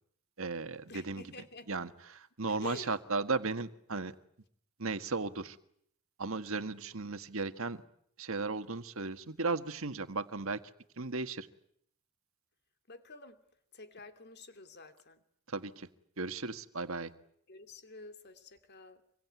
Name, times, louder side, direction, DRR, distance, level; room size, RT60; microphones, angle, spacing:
voice 1, 0.4-1.2 1.7-4.1 4.8-5.6 6.2-7.8 8.2-10.6 11.0-11.5 15.5-15.9 16.2-17.1, right 3 dB, 70° right, 1.6 m, -35 dB
voice 2, 0.9-1.7 2.5-2.9 12.9-13.4 13.7-15.2 17.5-19.0, left 3 dB, 50° left, 2.8 m, -49 dB
26.5 x 23.0 x 9.5 m
head